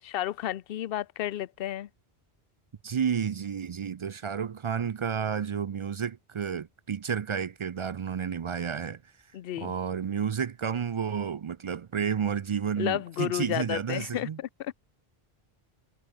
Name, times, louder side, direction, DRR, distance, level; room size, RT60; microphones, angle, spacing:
voice 1, 0.0-1.9 9.3-9.7 12.8-14.7, left 12 dB, 70° left, 0.8 m, -32 dB
voice 2, 2.8-9.0 9.6-14.4, right 7 dB, 55° right, 0.3 m, -31 dB
omnidirectional pair, 1.1 m